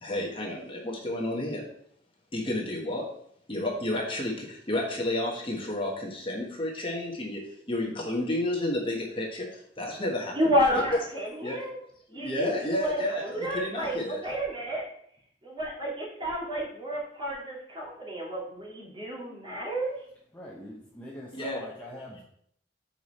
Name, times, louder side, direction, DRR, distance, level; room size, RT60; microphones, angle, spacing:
voice 1, 0.0-1.6 2.3-3.1 3.5-7.4 7.7-10.3 10.7-10.8 11.4-11.6 12.1-14.2 21.3-21.6, left 1 dB, 30° left, -1 dB, 1.3 m, -31 dB
voice 2, 10.3-11.8 12.1-14.8 15.4-20.0, equal, 30° right, -4 dB, 2.4 m, -30 dB
voice 3, 20.3-22.2, left 1 dB, 10° left, -5 dB, 1.0 m, -43 dB
7.0 x 4.8 x 4.2 m, 0.67 s
head